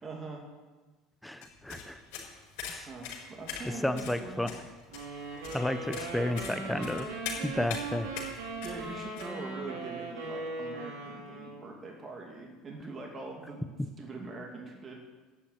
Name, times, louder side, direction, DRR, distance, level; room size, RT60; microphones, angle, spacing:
voice 1, 0.0-0.5 2.9-4.6 8.6-14.9, right 2 dB, 30° right, 0 dB, 2.5 m, -43 dB
voice 2, 1.2-2.0 2.7-2.9 3.8-4.5 5.5-7.1 7.4-8.1, left 1 dB, 5° left, 10 dB, 0.8 m, -32 dB
sound 1, 1.4-9.3, left 6 dB, 75° left, 4.8 m, -42 dB
sound 2, 4.9-11.7, right 3 dB, 85° right, 3.6 m, -39 dB
11.0 x 7.3 x 9.2 m, 1.3 s
supercardioid pair, 95°, 0 cm